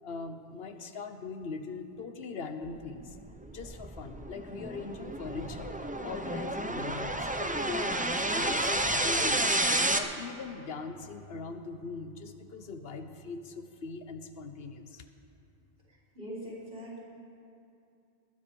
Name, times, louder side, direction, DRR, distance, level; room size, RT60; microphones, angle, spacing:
voice 1, 0.0-3.2 3.5-5.8 6.0-9.5 9.9-15.0, left 4 dB, 75° left, 8 dB, 1.1 m, -41 dB
sound 1, 3.0-10.0, right 1 dB, 10° right, 0.4 m, -30 dB
voice 2, 15.9-17.0, equal, 60° right, -6 dB, 4.2 m, -42 dB
19.5 x 10.0 x 5.3 m, 2.6 s
omnidirectional pair, 1.0 m